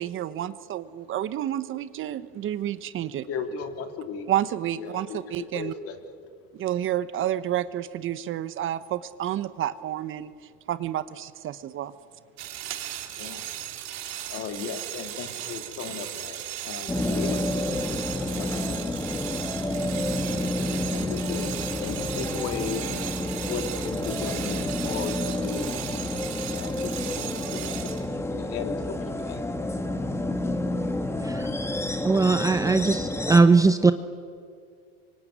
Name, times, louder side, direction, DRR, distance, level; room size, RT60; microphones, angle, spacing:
voice 1, 0.0-3.3 4.3-5.7 6.5-10.3 10.7-11.9 12.7-12.8, right 12 dB, 40° right, 14 dB, 1.0 m, -30 dB
voice 2, 3.3-4.2 4.8-5.2 5.5-6.0 13.2-13.4 14.3-17.4 18.3-18.8 20.9-22.8 23.4-25.8 26.5-29.5, left 6 dB, 50° left, 6 dB, 3.2 m, -36 dB
sound 1, 12.4-28.1, right 12 dB, 60° right, 3.7 m, -37 dB
sound 2, 16.9-33.4, left 1 dB, 10° left, 1.7 m, -29 dB
voice 3, 32.0-33.9, right 3 dB, 10° right, 10 dB, 0.7 m, -19 dB
25.5 x 24.5 x 9.4 m, 2.3 s
supercardioid pair, 120°, 31 cm